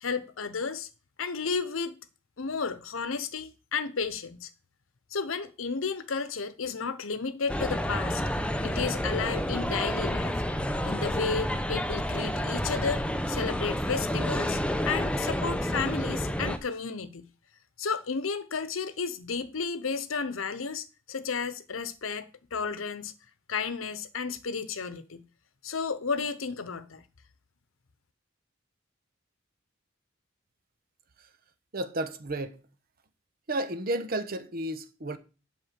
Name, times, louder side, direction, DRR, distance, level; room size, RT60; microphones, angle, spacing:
voice 1, 0.0-0.9 1.2-2.0 2.4-4.5 5.1-8.2 8.6-10.4 10.8-17.3 17.8-23.1 23.5-25.2 25.6-27.0, left 5 dB, 90° left, 0.8 m, -32 dB
sound 1, 7.5-16.6, equal, 5° left, 0.7 m, -29 dB
voice 2, 31.7-32.6 33.5-35.2, right 1 dB, 50° right, 1.0 m, -32 dB
8.1 x 5.3 x 7.4 m
head